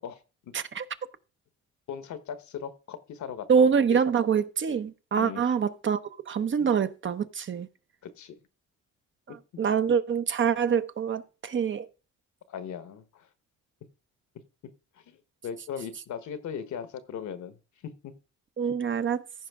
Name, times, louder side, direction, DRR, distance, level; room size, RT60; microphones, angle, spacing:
voice 1, 0.5-0.9 3.5-6.0 6.3-7.7 9.3-11.9 18.6-19.2, right 7 dB, 40° right, 0.7 m, -25 dB
voice 2, 1.9-4.0 5.2-5.5 6.6-6.7 8.0-8.4 12.5-13.3 15.1-15.2 15.4-17.6 17.8-18.1, left 7 dB, 70° left, 1.2 m, -38 dB
15.0 x 5.1 x 3.6 m
cardioid pair, 90°, 30 cm